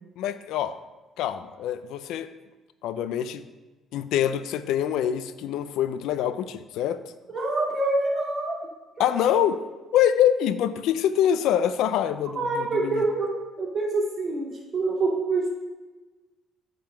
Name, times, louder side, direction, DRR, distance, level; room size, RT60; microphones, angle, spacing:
voice 1, 0.2-0.8 1.2-2.3 2.8-3.4 3.9-7.0 9.0-9.6 9.9-13.0, left 10 dB, 85° left, 12 dB, 0.4 m, -25 dB
voice 2, 7.3-8.7 9.0-9.2 12.3-15.5, right 2 dB, 45° right, -5 dB, 2.8 m, -26 dB
8.7 x 3.9 x 5.3 m, 1.2 s
cardioid pair, 105°, 0 cm